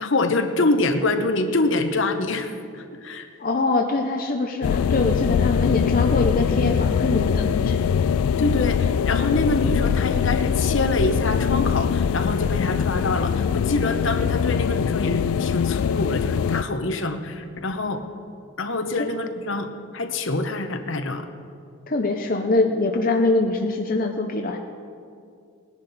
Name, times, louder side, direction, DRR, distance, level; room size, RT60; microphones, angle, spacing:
voice 1, 0.0-3.3 8.4-18.0 18.6-19.7 19.9-21.2, left 2 dB, 65° left, 7 dB, 1.0 m, -25 dB
voice 2, 3.4-7.8 18.9-19.1 21.9-24.6, left 2 dB, 40° left, 3 dB, 0.7 m, -23 dB
sound 1, 4.6-16.6, left 7 dB, 80° left, 0.3 m, -22 dB
19.5 x 10.5 x 4.2 m, 2.4 s
head